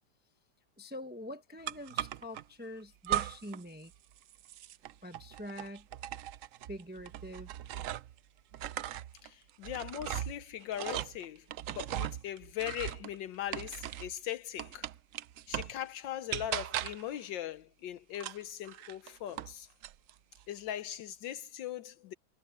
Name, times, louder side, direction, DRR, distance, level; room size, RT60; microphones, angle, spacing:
voice 1, 0.8-3.9 5.0-5.9 6.7-7.5, left 1 dB, 5° right, 0.8 m, -44 dB
sound 1, 1.7-2.4 3.0-3.6 3.9-8.2 8.5-14.2 14.6-15.8 16.3-17.1 18.1-19.5 19.8-20.4, right 12 dB, 80° right, 0.7 m, -38 dB
voice 2, 9.2-14.9 15.5-19.7 20.5-22.1, left 11 dB, 80° left, 1.5 m, -40 dB
omnidirectional pair, 2.0 m